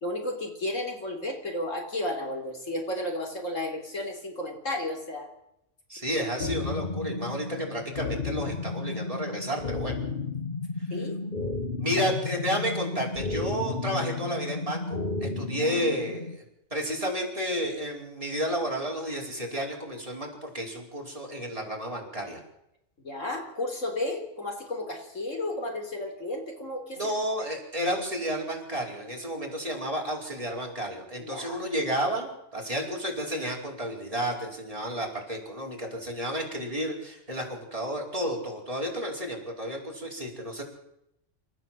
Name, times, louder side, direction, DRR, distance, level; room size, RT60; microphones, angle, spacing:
voice 1, 0.0-5.3 10.9-11.2 11.9-12.1 15.6-15.9 23.0-27.0 31.2-31.6, left 1 dB, 80° left, 2 dB, 4.3 m, -33 dB
voice 2, 5.9-9.9 11.8-16.3 16.7-22.4 27.0-40.6, equal, 25° right, -2 dB, 5.1 m, -31 dB
sound 1, 6.4-16.4, left 3 dB, 40° left, 1.5 m, -33 dB
27.5 x 14.0 x 7.7 m, 0.84 s
omnidirectional pair, 1.3 m